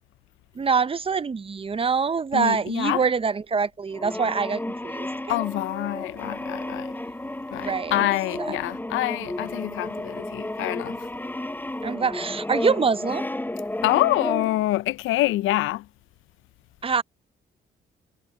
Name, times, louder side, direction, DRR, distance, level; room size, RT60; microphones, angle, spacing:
voice 1, 0.6-5.4 7.5-8.1 8.4-8.6 11.8-13.3 16.8-17.0, right 5 dB, 30° right, 0.7 m, -25 dB
voice 2, 2.3-3.1 5.3-6.9 7.5-11.0 13.8-15.8, left 16 dB, 85° left, 0.5 m, -26 dB
Brass instrument, 3.9-14.7, left 1 dB, 10° left, 4.7 m, -32 dB
cardioid pair, 90°, 20 cm